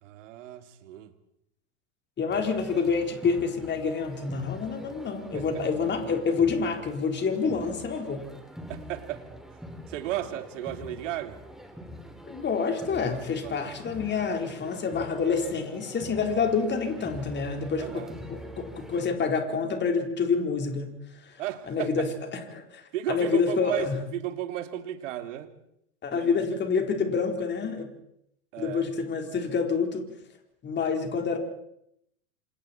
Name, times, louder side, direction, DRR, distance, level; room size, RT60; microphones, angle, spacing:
voice 1, 0.0-1.1 5.3-5.5 8.7-9.3 9.9-11.4 13.4-13.7 17.8-18.1 21.4-21.9 22.9-25.5 26.1-26.3 28.5-28.9, right 13 dB, 65° right, 9 dB, 2.5 m, -34 dB
voice 2, 2.2-8.3 12.3-21.4 21.7-22.1 22.5-24.0 26.0-27.9 28.6-30.1 30.6-31.4, left 5 dB, 25° left, 4 dB, 4.3 m, -28 dB
sound 1, 2.3-19.1, equal, ahead, 3.7 m, -44 dB
27.5 x 27.5 x 4.5 m, 0.77 s
hypercardioid pair, 95°, 41 cm